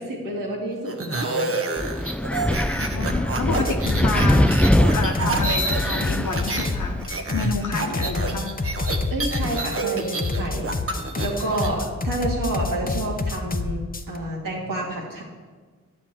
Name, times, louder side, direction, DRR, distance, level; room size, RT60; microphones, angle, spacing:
voice 1, 0.0-1.6 9.1-10.7 11.2-15.2, right 1 dB, 80° right, -3 dB, 2.3 m, -29 dB
sound 1, 0.9-6.7 7.0-11.7, right 3 dB, 45° right, 1.2 m, -28 dB
Wind, 1.8-7.0, left 1 dB, 5° left, 0.3 m, -23 dB
voice 2, 2.7-4.5 4.9-7.0 7.3-8.5, left 4 dB, 65° left, 2 dB, 1.0 m, -29 dB
sound 2, 3.5-14.2, left 3 dB, 25° left, 0.8 m, -28 dB
10.0 x 4.5 x 7.5 m, 1.4 s
cardioid pair, 45°, 33 cm